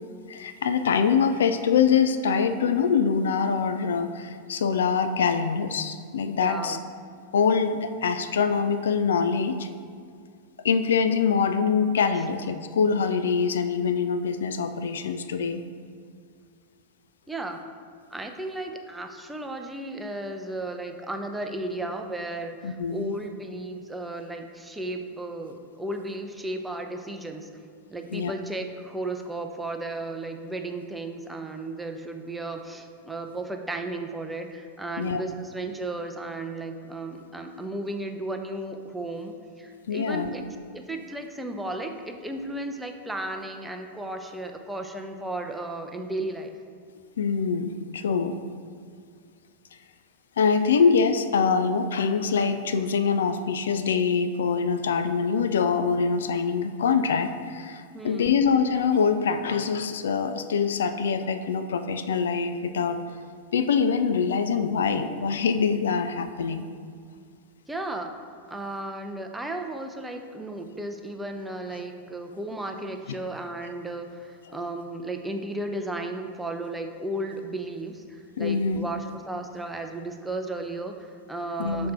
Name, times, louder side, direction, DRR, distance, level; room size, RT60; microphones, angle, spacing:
voice 1, 0.3-6.8 7.3-9.7 10.6-15.6 22.6-23.1 28.1-28.3 35.0-35.2 39.9-40.3 47.2-48.4 50.4-63.0 63.5-66.6 78.4-78.9 81.6-81.9, left 6 dB, 65° left, 9 dB, 0.3 m, -24 dB
voice 2, 6.4-6.8 17.3-17.6 18.1-27.5 27.9-40.5 40.7-46.5 57.9-58.4 67.7-68.1 68.5-81.9, right 2 dB, 5° right, 4 dB, 0.5 m, -34 dB
5.8 x 4.2 x 4.9 m, 2.2 s
figure-of-eight pair, 90°, 0 cm